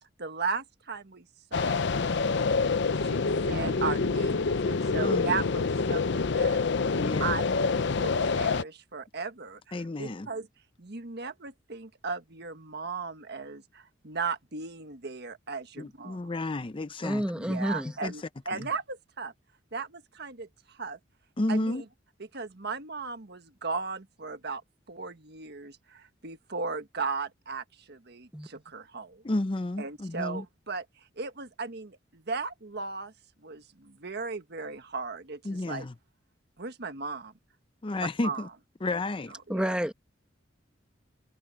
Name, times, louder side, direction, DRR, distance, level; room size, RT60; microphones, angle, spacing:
voice 1, 0.2-1.3 1.5-2.4 2.9-10.5 10.8-16.2 17.4-19.3 19.7-21.0 21.5-21.8 22.3-24.6 24.9-29.2 29.8-30.8 31.2-33.1 33.4-35.8 36.6-37.3 38.0-38.4 39.5-39.7, right 4 dB, 60° right, 1.5 m, -36 dB
sound 1, 1.5-8.6, left 4 dB, 65° left, 0.6 m, -27 dB
voice 2, 4.9-5.4 6.9-7.3 9.7-10.3 15.8-17.2 18.0-18.1 18.5-18.7 21.4-21.8 29.2-30.4 35.4-35.9 37.8-38.5 38.8-39.3, left 2 dB, 30° left, 0.6 m, -31 dB
voice 3, 17.0-17.9 28.3-28.5 39.5-39.9, equal, 5° right, 1.2 m, -29 dB
head